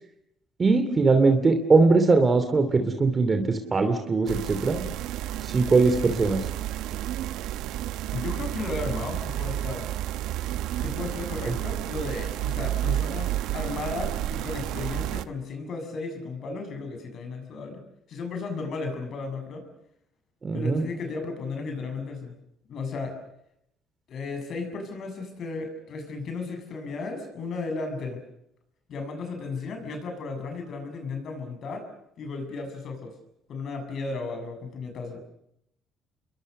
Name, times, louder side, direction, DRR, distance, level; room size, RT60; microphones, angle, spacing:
voice 1, 0.6-4.8 5.4-6.4 20.4-20.8, right 3 dB, 30° right, 7 dB, 2.8 m, -21 dB
sound 1, 4.3-15.2, right 13 dB, 80° right, 1.0 m, -31 dB
voice 2, 8.1-9.8 10.8-17.8 18.1-19.7 20.5-22.3 22.7-23.1 24.1-28.2 28.9-31.9 32.2-33.1 33.5-35.2, left 3 dB, 55° left, 6 dB, 7.2 m, -34 dB
29.0 x 22.5 x 6.6 m, 0.77 s
cardioid pair, 100°, 0 cm